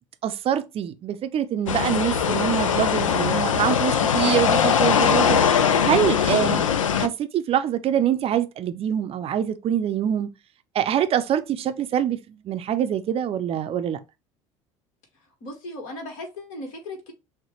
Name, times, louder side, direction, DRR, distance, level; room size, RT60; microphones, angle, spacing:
voice 1, 0.2-5.4 5.8-6.6 7.0-10.3 10.7-14.0, right 10 dB, 35° right, 0.6 m, -25 dB
sound 1, 1.7-7.1, left 7 dB, 80° left, 0.4 m, -21 dB
voice 2, 15.4-17.1, left 1 dB, 55° left, 1.5 m, -36 dB
6.1 x 2.2 x 3.1 m
figure-of-eight pair, 65°, 17 cm